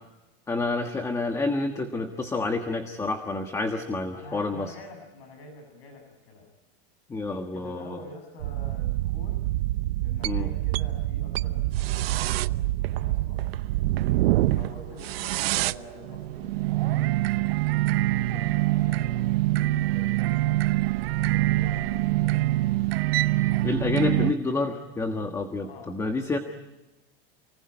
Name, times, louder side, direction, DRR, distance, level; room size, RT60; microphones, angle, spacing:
voice 1, 0.5-4.7 7.1-8.0 10.2-10.5 23.6-26.4, left 3 dB, 10° left, 5 dB, 1.4 m, -28 dB
voice 2, 4.1-6.5 7.5-9.4 10.0-13.5 14.5-17.2 17.8-20.8 21.2-22.5 23.3-23.7 25.6-25.9, left 2 dB, 85° left, 3 dB, 7.3 m, -46 dB
sound 1, 8.4-24.3, right 16 dB, 80° right, 0.9 m, -25 dB
29.0 x 20.0 x 9.8 m, 1.0 s
supercardioid pair, 170°, 30 cm